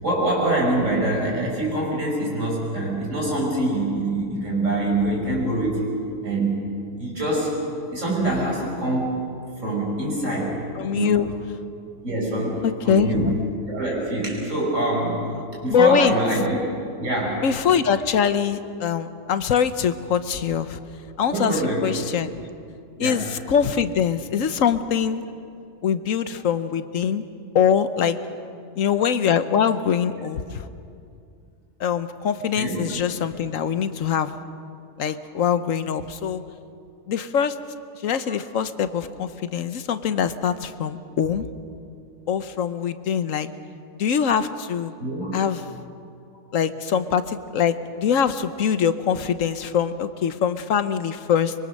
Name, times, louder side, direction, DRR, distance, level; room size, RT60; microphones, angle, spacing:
voice 1, 0.0-5.8 6.2-6.6 7.0-7.6 7.9-9.2 9.6-10.6 10.9-11.2 12.0-13.3 13.7-15.3 15.6-16.5 16.8-17.4 21.3-21.9 23.0-23.2 32.5-32.9 38.3-38.4 45.0-45.4, right 1 dB, 70° right, -2 dB, 6.0 m, -24 dB
voice 2, 10.8-11.3 12.6-13.4 15.7-16.1 17.4-20.8 21.2-22.5 23.0-25.2 25.8-27.2 27.5-28.2 28.8-30.6 31.8-34.3 35.0-36.4 37.1-37.5 38.0-41.5 42.3-43.5 44.0-44.9 45.3-45.6 46.5-51.5, left 7 dB, 90° left, 12 dB, 1.3 m, -23 dB
24.5 x 23.5 x 6.5 m, 2.4 s
omnidirectional pair, 1.3 m